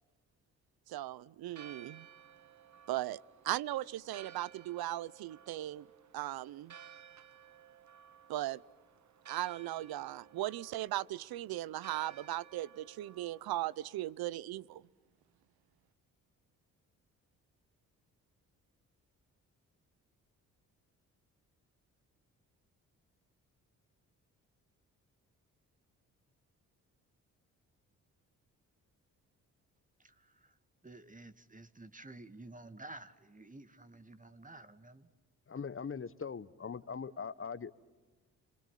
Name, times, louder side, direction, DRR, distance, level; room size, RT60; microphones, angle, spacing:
voice 1, 0.9-2.1 2.9-3.2 3.4-5.9 6.1-6.7 8.3-8.6 9.3-14.8, right 14 dB, 70° right, 22 dB, 0.8 m, -38 dB
Church bell, 1.4-14.1, right 8 dB, 50° right, 1.5 m, -57 dB
voice 2, 30.0-30.6 30.8-35.1, right 2 dB, 20° right, 10 dB, 2.3 m, -52 dB
voice 3, 35.5-37.7, left 6 dB, 35° left, 16 dB, 1.4 m, -41 dB
28.5 x 26.5 x 7.5 m, 1.2 s
hypercardioid pair, 50°, 38 cm